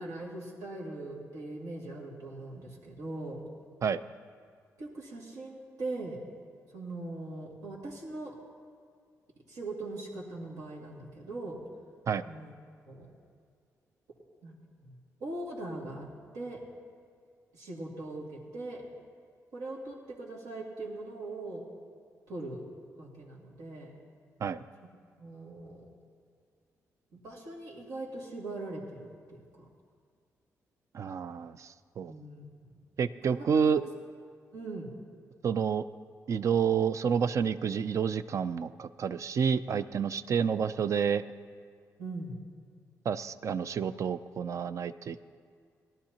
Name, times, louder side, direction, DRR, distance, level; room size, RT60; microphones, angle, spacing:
voice 1, 0.0-3.4 4.8-6.2 6.7-8.4 9.5-11.6 12.2-12.5 12.8-13.1 14.4-16.1 16.3-16.6 17.5-18.8 19.5-21.6 22.3-22.7 22.9-23.9 25.2-25.9 27.1-29.6 32.0-32.7 33.3-33.7 34.5-34.9 42.0-42.4, right 2 dB, 85° right, -3 dB, 2.3 m, -41 dB
voice 2, 30.9-32.1 33.0-33.8 35.4-35.8 36.3-41.2 43.1-45.2, right 7 dB, 55° right, 14 dB, 0.4 m, -29 dB
18.5 x 12.0 x 2.9 m, 2.2 s
cardioid pair, 75°, 6 cm